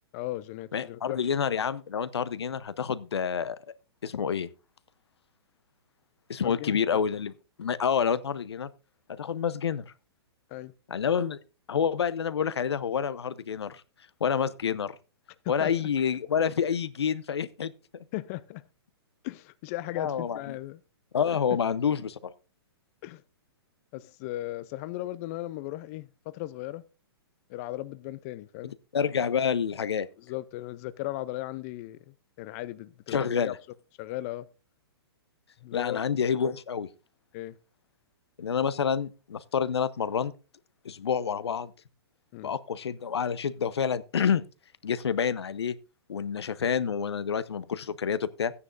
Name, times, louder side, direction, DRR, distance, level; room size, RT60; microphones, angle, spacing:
voice 1, 0.1-1.2 6.4-7.0 10.5-10.7 15.4-15.8 18.1-18.6 19.2-20.8 21.2-21.4 23.0-23.2 23.9-26.8 27.5-28.7 30.2-33.5 34.0-34.5 35.6-36.0 37.3-37.6 42.3-42.5, left 16 dB, 35° left, 0.5 m, -37 dB
voice 2, 0.7-3.6 4.0-4.5 6.3-7.3 7.6-8.7 9.2-9.9 10.9-11.4 11.7-13.8 14.2-14.9 15.5-17.7 20.0-20.4 21.1-22.3 28.9-30.1 33.1-33.5 35.7-36.9 38.4-40.3 40.8-41.7 42.4-44.4 44.8-45.8 46.1-48.5, left 7 dB, 80° left, 0.8 m, -28 dB
14.0 x 9.7 x 2.5 m
hypercardioid pair, 130°, 14 cm